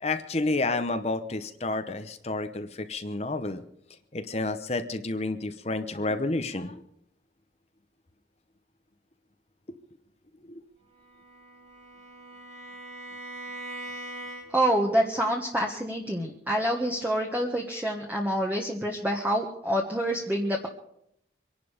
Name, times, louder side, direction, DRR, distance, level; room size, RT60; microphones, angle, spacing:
voice 1, 0.0-3.6 4.1-6.8 10.5-10.6, left 2 dB, 35° left, 8 dB, 0.9 m, -30 dB
Bowed string instrument, 10.9-14.8, right 1 dB, 40° right, 4.1 m, -42 dB
voice 2, 14.5-20.7, right 1 dB, 10° right, 0 dB, 1.4 m, -27 dB
25.0 x 11.0 x 5.1 m, 0.76 s
head